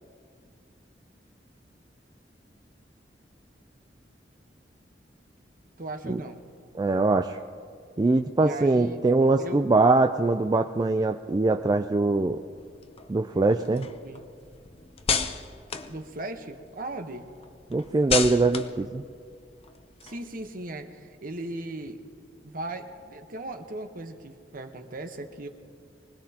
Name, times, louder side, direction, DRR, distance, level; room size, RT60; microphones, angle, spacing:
voice 1, 5.8-6.4 8.4-9.0 9.4-9.7 13.4-14.2 15.9-17.3 20.0-22.0 22.4-25.5, right 2 dB, 55° right, 6 dB, 1.1 m, -38 dB
voice 2, 6.7-7.4 8.0-12.4 13.1-13.9 17.7-19.0, right 3 dB, 25° right, 6 dB, 0.3 m, -22 dB
sound 1, 12.6-16.7 17.1-20.6, left 6 dB, 35° left, 0.6 m, -33 dB
24.5 x 19.0 x 2.9 m, 2.3 s
head